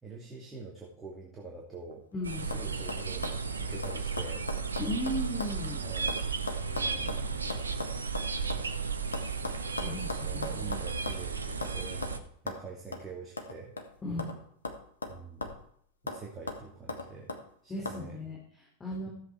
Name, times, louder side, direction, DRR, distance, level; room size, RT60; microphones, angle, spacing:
voice 1, 0.0-2.0 2.3-4.4 5.8-6.2 6.7-7.6 9.8-13.7 15.1-15.6 16.0-17.3 17.6-18.2, right 4 dB, 15° right, -2 dB, 2.4 m, -45 dB
sound 1, 1.7-2.1 2.5-2.6 2.9-5.6 5.8-8.7 9.1-11.3 11.6-11.8 12.0-12.2 12.5-12.6 12.9-13.1 13.4-14.4 14.7-15.7 16.1-16.2 16.5-17.4 17.9-18.0, left 3 dB, 75° left, 1.5 m, -38 dB
voice 2, 2.1-2.5 4.8-5.8 9.8-10.7 14.0-14.3 17.7-19.1, left 1 dB, 15° left, -1 dB, 2.8 m, -36 dB
sound 2, 2.2-12.2, right 5 dB, 75° right, 0.9 m, -34 dB
14.0 x 7.8 x 4.7 m, 0.65 s
figure-of-eight pair, 90°, 0 cm